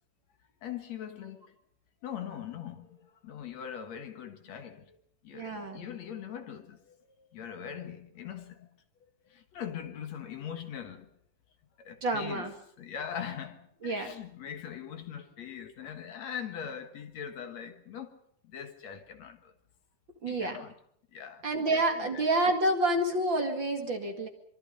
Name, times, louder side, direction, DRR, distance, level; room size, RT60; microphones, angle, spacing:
voice 1, 0.6-1.5 2.0-5.0 5.2-8.7 9.3-11.1 11.8-12.5 12.8-18.2 18.4-19.5 20.3-20.7 21.1-22.2, left 8 dB, 55° left, 2.2 m, -41 dB
voice 2, 5.3-5.8 12.0-12.5 13.8-14.1 20.2-20.6 21.4-24.3, right 1 dB, 35° right, 2.2 m, -28 dB
26.0 x 23.5 x 5.4 m
omnidirectional pair, 4.7 m